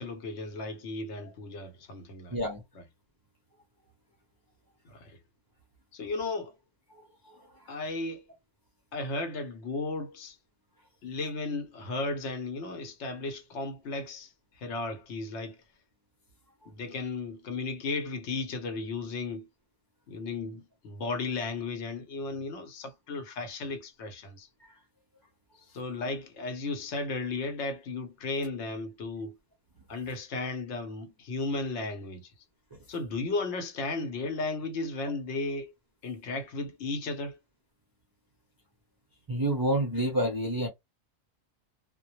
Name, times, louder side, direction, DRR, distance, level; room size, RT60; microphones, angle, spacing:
voice 1, 0.0-2.4 4.8-5.2 5.9-6.5 7.7-8.2 8.9-10.4 11.0-15.6 16.7-19.5 20.1-24.5 25.7-29.4 29.9-32.3 32.9-35.7 36.0-37.4, left 3 dB, 75° left, 1.0 m, -35 dB
voice 2, 39.3-40.7, right 1 dB, 30° right, 0.4 m, -28 dB
2.1 x 2.0 x 2.9 m
omnidirectional pair, 1.2 m